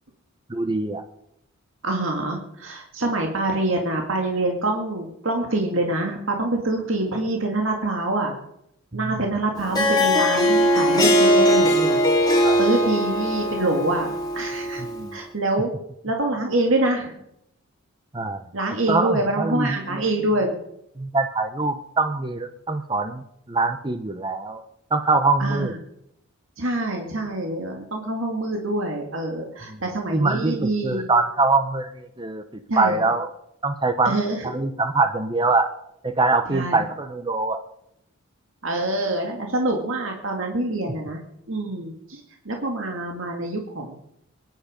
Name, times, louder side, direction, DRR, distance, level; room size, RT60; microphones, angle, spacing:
voice 1, 0.5-1.0 8.9-9.1 12.4-12.6 14.8-15.1 18.1-18.4 18.9-20.0 21.0-23.2 23.5-24.6 24.9-25.7 29.7-29.8 30.1-32.4 32.8-33.3 33.6-34.2 34.4-35.7 36.0-37.6, right 3 dB, 20° right, 9 dB, 0.7 m, -23 dB
voice 2, 1.8-8.4 8.9-14.8 15.1-15.7 16.0-17.2 18.5-20.6 25.4-25.8 26.6-31.1 32.7-33.0 34.0-34.5 36.5-36.8 38.6-41.2 41.5-44.0, right 2 dB, 65° right, 1 dB, 2.1 m, -26 dB
Harp, 9.6-15.0, equal, 20° left, 2.2 m, -20 dB
22.5 x 10.5 x 5.1 m, 0.78 s
head